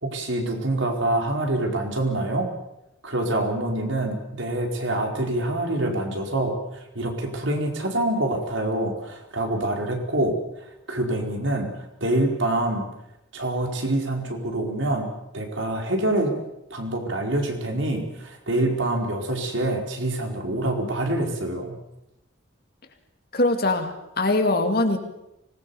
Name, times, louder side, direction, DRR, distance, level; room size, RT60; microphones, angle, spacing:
voice 1, 0.0-2.5 3.0-10.4 10.9-12.9 13.3-16.3 16.7-21.7, right 1 dB, 70° right, 2 dB, 4.6 m, -26 dB
voice 2, 23.3-25.0, left 2 dB, 50° left, 6 dB, 2.4 m, -22 dB
25.0 x 20.0 x 7.1 m, 0.87 s
head